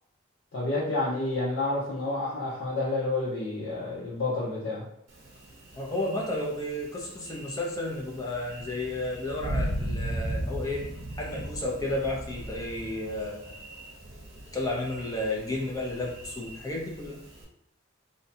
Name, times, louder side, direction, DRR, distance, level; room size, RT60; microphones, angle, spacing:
voice 1, 0.5-4.8, left 2 dB, 80° left, -9 dB, 0.8 m, -29 dB
Thunder, 5.1-17.4, right 1 dB, 60° right, 0.7 m, -38 dB
voice 2, 5.7-10.8 11.2-13.5 14.5-17.2, left 1 dB, 20° left, -2 dB, 0.5 m, -32 dB
2.7 x 2.2 x 2.7 m, 0.81 s
head